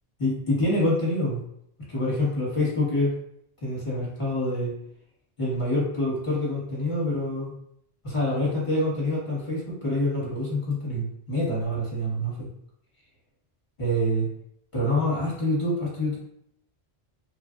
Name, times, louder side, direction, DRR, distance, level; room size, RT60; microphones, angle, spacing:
voice 1, 0.2-1.4 1.9-3.1 3.6-4.7 5.4-7.5 8.0-12.5 13.8-14.3 14.7-16.2, left 1 dB, 30° left, -6 dB, 1.2 m, -26 dB
3.2 x 2.4 x 2.5 m, 0.71 s
omnidirectional pair, 1.1 m